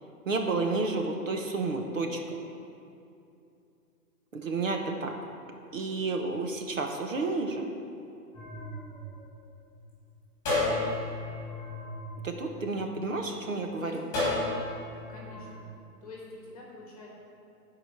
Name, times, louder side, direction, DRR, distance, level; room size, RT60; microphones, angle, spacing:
voice 1, 0.3-2.2 4.3-5.1 5.7-7.7 12.2-14.0, right 3 dB, 50° right, 3 dB, 1.0 m, -31 dB
sound 1, 8.3-9.8 10.4-13.0 14.1-15.5, left 2 dB, 5° left, 2.4 m, -33 dB
voice 2, 15.1-15.6 16.0-17.1, left 3 dB, 20° left, -3 dB, 1.4 m, -45 dB
13.5 x 5.0 x 5.7 m, 2.6 s
hypercardioid pair, 175°, 49 cm